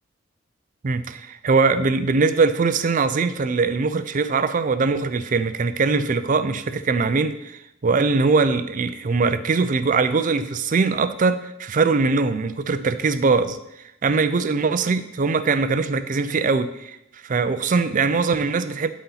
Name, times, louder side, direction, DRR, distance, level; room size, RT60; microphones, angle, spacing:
voice 1, 0.8-13.6 14.0-17.0 17.2-18.9, right 4 dB, 40° right, 0.4 m, -21 dB
12.0 x 4.2 x 4.0 m
head